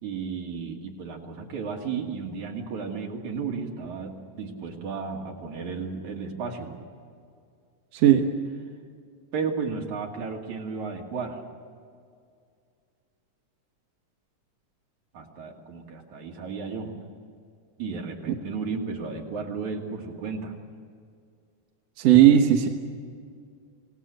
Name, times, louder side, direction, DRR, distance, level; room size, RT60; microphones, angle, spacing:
voice 1, 0.0-6.8 9.3-11.4 15.1-16.9 17.8-20.6, right 5 dB, 80° right, 0 dB, 3.8 m, -33 dB
voice 2, 7.9-8.2 22.0-22.7, right 11 dB, 65° right, 3 dB, 2.4 m, -16 dB
27.0 x 18.5 x 7.9 m, 2.2 s
omnidirectional pair, 3.3 m